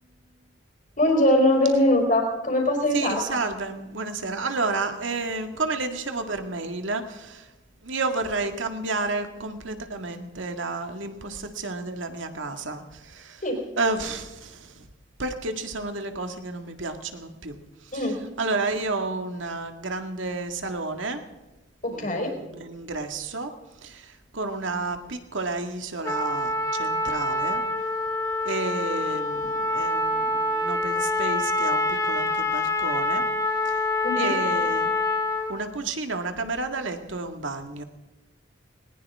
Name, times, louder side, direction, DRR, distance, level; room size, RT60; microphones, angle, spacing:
voice 1, 1.0-3.4 13.4-13.6 17.9-18.2 21.8-22.4 34.0-34.4, left 1 dB, 45° left, 2 dB, 4.4 m, -22 dB
voice 2, 2.9-7.5 7.8-13.4 13.8-14.8 15.2-17.6 17.9-18.0 18.4-21.2 21.9-23.5 23.8-27.6 28.5-33.3 33.7-33.8 34.2-34.9 35.5-37.8, right 3 dB, 90° right, 6 dB, 2.0 m, -31 dB
Trumpet, 26.0-35.5, left 2 dB, 20° left, 3.4 m, -26 dB
20.0 x 20.0 x 3.6 m, 1.1 s
head